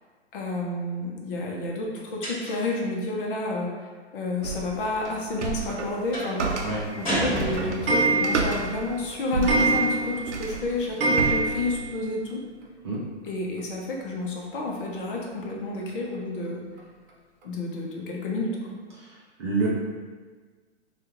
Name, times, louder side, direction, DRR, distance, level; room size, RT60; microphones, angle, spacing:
voice 1, 0.3-3.7 4.1-12.4 13.2-16.6 17.4-18.6, left 2 dB, 50° left, -1 dB, 0.7 m, -30 dB
sound 1, 2.2-2.8 6.1-6.4 7.0-8.1, right 1 dB, 15° left, 1.0 m, -29 dB
sound 2, 4.4-11.8, right 4 dB, 85° right, 0.6 m, -32 dB
voice 2, 6.6-6.8 12.8-13.0 19.0-19.1 19.4-19.7, right 3 dB, 25° right, -6 dB, 0.4 m, -27 dB
Clock, 6.9-12.0 12.3-12.4 12.6-12.7 12.9-13.0 14.2-14.3 14.9-15.0 15.5-15.6 16.1-16.2 16.8-16.9 17.4-17.5, right 3 dB, 50° right, 0.8 m, -26 dB
3.4 x 2.4 x 3.0 m, 1.4 s
hypercardioid pair, 135°, 35 cm